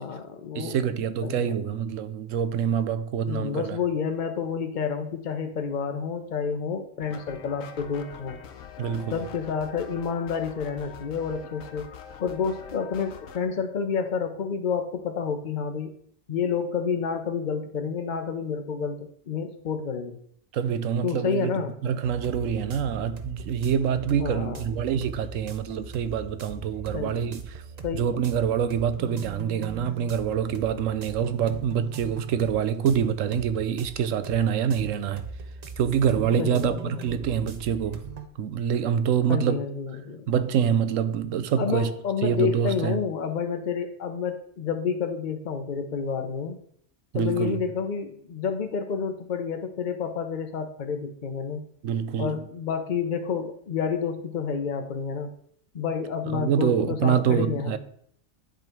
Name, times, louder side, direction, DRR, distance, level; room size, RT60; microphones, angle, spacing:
voice 1, 0.0-0.8 1.2-1.5 3.2-8.4 9.1-11.9 12.2-15.9 16.3-20.2 21.0-21.7 24.2-24.6 26.9-27.2 27.8-28.1 36.4-37.1 39.3-40.3 41.6-46.6 47.1-51.6 52.2-55.3 55.7-57.8, left 6 dB, 40° left, 0.9 m, -29 dB
voice 2, 0.5-3.8 8.8-9.2 20.5-21.5 21.8-27.6 27.9-35.2 35.8-38.1 38.4-39.6 40.3-41.9 42.2-43.0 47.1-47.6 51.8-52.3 56.3-57.8, right 8 dB, 85° right, 1.0 m, -26 dB
sound 1, 7.0-13.4, left 7 dB, 80° left, 1.1 m, -44 dB
sound 2, 22.0-38.3, right 4 dB, 40° right, 0.7 m, -41 dB
10.5 x 3.9 x 4.5 m
omnidirectional pair, 1.3 m